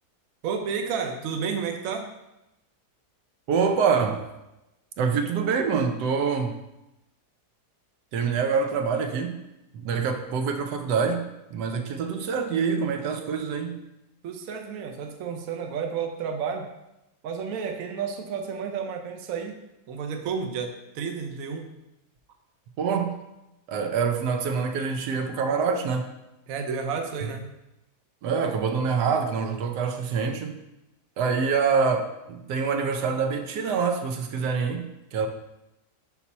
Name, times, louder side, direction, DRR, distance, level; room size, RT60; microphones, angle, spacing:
voice 1, 0.4-2.1 14.2-16.7 17.2-19.6 19.9-21.7 26.5-27.5, right 6 dB, 65° right, 4 dB, 1.0 m, -31 dB
voice 2, 3.5-4.3 5.0-6.6 8.1-9.4 9.7-13.8 22.8-23.2 23.7-26.1 27.2-27.3 28.2-30.6 31.2-35.3, right 5 dB, 80° right, 5 dB, 1.2 m, -26 dB
5.5 x 4.2 x 4.1 m, 0.92 s
omnidirectional pair, 1.8 m